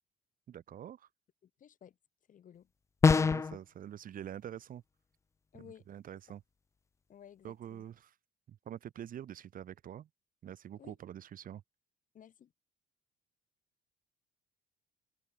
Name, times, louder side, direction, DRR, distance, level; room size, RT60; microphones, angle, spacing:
voice 1, 0.5-1.1 3.1-4.8 5.6-6.4 7.4-8.1 8.5-10.1 10.4-11.6, right 10 dB, 55° right, 4.1 m, -46 dB
voice 2, 1.4-2.0 2.3-2.7 5.5-5.9 6.3-6.4 7.1-7.8 10.8-11.0 12.1-12.5, left 9 dB, 50° left, 6.9 m, -55 dB
sound 1, 3.0-3.6, left 5 dB, 15° left, 0.3 m, -23 dB
cardioid pair, 110°, 17 cm